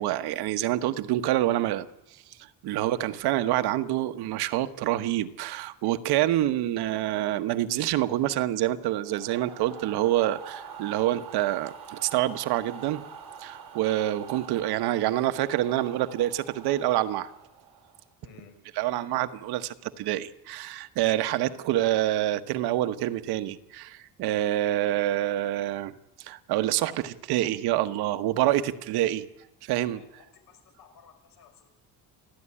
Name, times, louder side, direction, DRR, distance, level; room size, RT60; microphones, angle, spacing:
voice 1, 0.0-1.8 2.1-2.4 2.6-13.0 13.4-17.3 18.7-29.3 29.6-30.0, right 14 dB, 85° right, 10 dB, 1.3 m, -27 dB
sound 1, 9.0-18.1, right 7 dB, 60° right, 5.0 m, -45 dB
voice 2, 18.2-18.5 29.9-30.0 30.5-31.7, left 7 dB, 65° left, 6 dB, 5.3 m, -53 dB
30.0 x 12.5 x 10.0 m, 0.91 s
cardioid pair, 160°, 37 cm